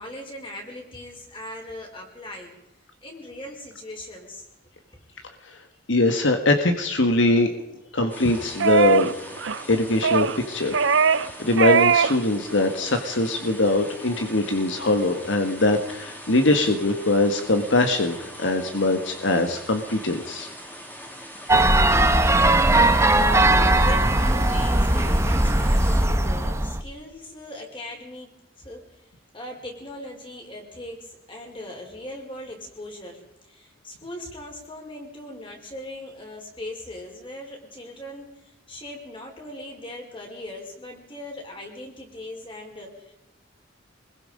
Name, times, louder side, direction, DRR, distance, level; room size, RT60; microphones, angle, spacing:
voice 1, 0.0-2.5 3.0-4.5 23.0-29.1 29.3-43.1, left 1 dB, 25° left, 1 dB, 5.2 m, -39 dB
voice 2, 5.9-7.5 7.9-9.1 9.7-20.5, left 2 dB, 70° left, 6 dB, 1.6 m, -22 dB
sound 1, 8.1-26.1, equal, 10° left, 3.1 m, -41 dB
sound 2, 8.6-9.1 9.4-9.6 10.0-10.4 10.7-11.3 11.6-12.2 12.5-12.6, right 6 dB, 70° right, 0.7 m, -20 dB
sound 3, 21.5-26.8, right 1 dB, 15° right, 1.0 m, -19 dB
25.0 x 21.5 x 5.2 m, 0.89 s
head